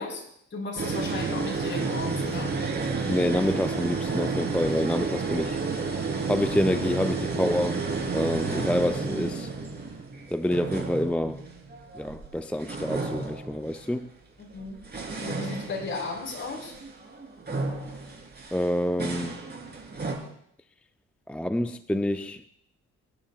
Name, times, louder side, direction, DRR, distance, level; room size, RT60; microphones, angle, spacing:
voice 1, 0.0-2.6 14.4-14.8 15.2-16.8, left 3 dB, 40° left, 4.5 m, -35 dB
sound 1, 0.8-12.3 12.6-14.0 14.6-20.1, right 4 dB, 35° right, 3.7 m, -31 dB
voice 2, 3.0-5.6 6.3-7.8 8.1-9.5 10.3-11.4 11.9-14.1 18.5-19.4 21.3-22.4, left 1 dB, 5° left, 0.4 m, -27 dB
26.5 x 10.0 x 2.4 m
cardioid pair, 90°, 30 cm